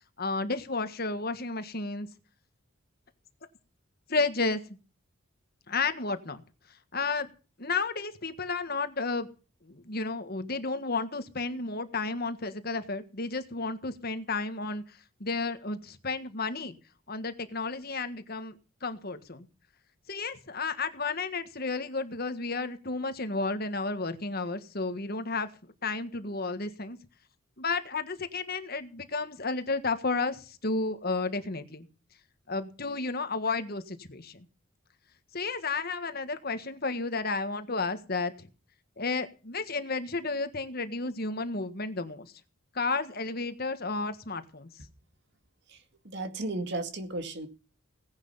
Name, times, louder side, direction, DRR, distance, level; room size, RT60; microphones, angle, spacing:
voice 1, 0.2-2.1 4.1-4.8 5.7-6.4 6.9-7.3 7.6-9.3 9.6-16.7 17.1-18.5 18.8-19.5 20.1-25.5 25.8-27.0 27.6-31.9 32.5-34.5 35.3-38.5 39.0-42.3 42.7-44.7, left 3 dB, 45° left, 10 dB, 1.5 m, -32 dB
voice 2, 46.0-47.5, right 2 dB, 55° right, 8 dB, 2.1 m, -34 dB
18.0 x 10.5 x 5.7 m, 0.36 s
head